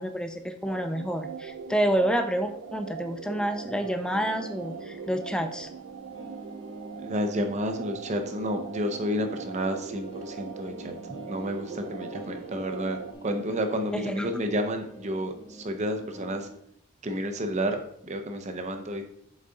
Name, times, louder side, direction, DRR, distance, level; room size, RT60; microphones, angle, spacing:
voice 1, 0.0-5.7 13.9-14.3, right 1 dB, 5° left, 7 dB, 0.5 m, -28 dB
sound 1, 0.6-13.1, right 6 dB, 90° right, 0.4 m, -41 dB
sound 2, 3.8-16.6, right 1 dB, 25° left, 0.9 m, -45 dB
voice 2, 7.0-10.9 11.3-16.5 17.0-19.0, equal, 35° right, 6 dB, 0.7 m, -30 dB
7.1 x 4.1 x 3.8 m, 0.69 s
head